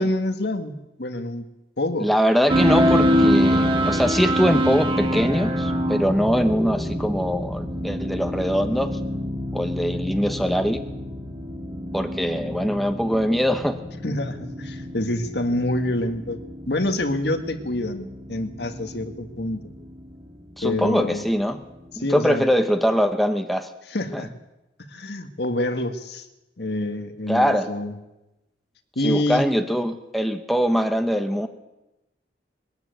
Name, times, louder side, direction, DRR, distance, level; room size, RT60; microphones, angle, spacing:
voice 1, 0.0-1.5 1.8-2.1 14.0-16.4 16.7-19.7 20.6-21.2 21.9-22.4 23.9-24.3 24.9-26.3 26.6-27.9 29.0-29.4, left 1 dB, 65° left, 7 dB, 1.7 m, -26 dB
voice 2, 2.0-9.0 9.5-10.8 11.9-13.8 20.6-21.6 22.0-23.7 24.1-24.2 27.3-27.7 29.0-31.5, equal, ahead, 6 dB, 1.0 m, -22 dB
sound 1, 2.5-22.4, equal, 30° right, 2.1 m, -26 dB
21.0 x 13.5 x 9.4 m, 0.98 s
head